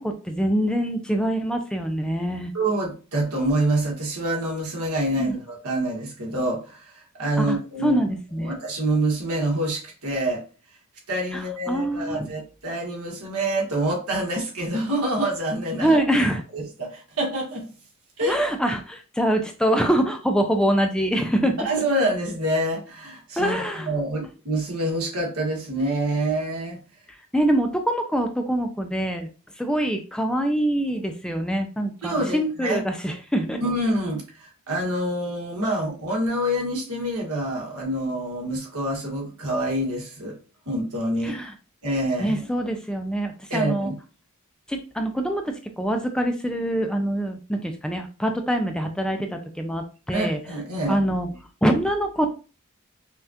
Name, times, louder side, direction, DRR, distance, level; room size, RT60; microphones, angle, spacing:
voice 1, 0.0-2.5 5.2-5.3 7.4-7.6 7.8-8.5 11.7-12.3 15.8-16.4 18.3-21.6 23.4-23.9 27.3-29.3 29.6-33.6 41.2-41.5 42.2-43.9 44.7-50.4 50.9-51.3 51.6-52.5, right 1 dB, 5° left, 5 dB, 0.3 m, -24 dB
voice 2, 2.5-8.0 8.4-10.4 11.1-16.0 16.5-17.7 18.2-18.4 21.6-26.8 32.0-32.8 33.6-40.4 40.6-41.4 41.8-42.4 43.5-43.9 50.1-51.0, right 1 dB, 80° right, -1 dB, 1.6 m, -26 dB
5.4 x 2.4 x 2.8 m, 0.34 s
head